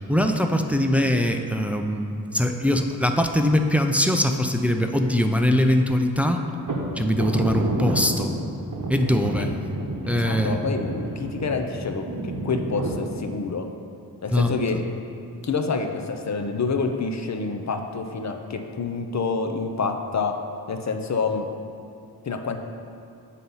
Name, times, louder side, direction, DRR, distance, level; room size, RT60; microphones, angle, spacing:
voice 1, 0.1-6.5 7.0-8.3 8.9-9.5 10.1-10.6 14.3-14.8, left 1 dB, 5° right, 5 dB, 0.3 m, -22 dB
sound 1, 6.6-12.9, right 1 dB, 50° right, 1.1 m, -30 dB
voice 2, 10.0-13.7 14.2-14.8 15.4-20.3 20.7-21.5 22.3-22.6, left 4 dB, 45° left, 5 dB, 0.6 m, -27 dB
7.9 x 4.1 x 5.5 m, 2.7 s
wide cardioid pair, 120°, 39 cm